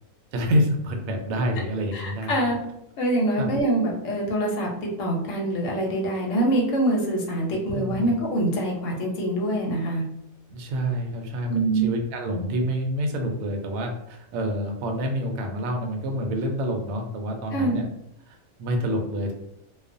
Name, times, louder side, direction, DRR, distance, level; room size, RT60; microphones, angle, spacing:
voice 1, 0.3-2.4 3.4-3.5 7.7-8.1 10.5-17.8 18.3-19.3, equal, 70° right, 3 dB, 0.9 m, -27 dB
voice 2, 1.9-2.6 3.0-4.7 5.0-10.0 11.5-11.9 17.5-17.8, right 1 dB, 65° left, -1 dB, 0.9 m, -24 dB
2.3 x 2.3 x 2.5 m, 0.80 s
omnidirectional pair, 1.6 m